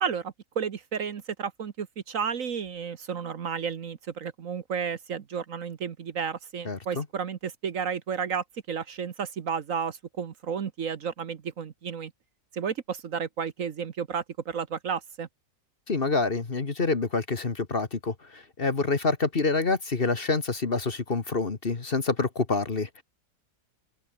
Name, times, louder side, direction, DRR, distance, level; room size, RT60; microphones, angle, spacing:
voice 1, 0.0-12.1 12.5-15.3, right 6 dB, 55° right, 1.4 m, -32 dB
voice 2, 6.6-7.0 15.9-23.0, left 3 dB, 35° left, 1.7 m, -27 dB
omnidirectional pair, 1.7 m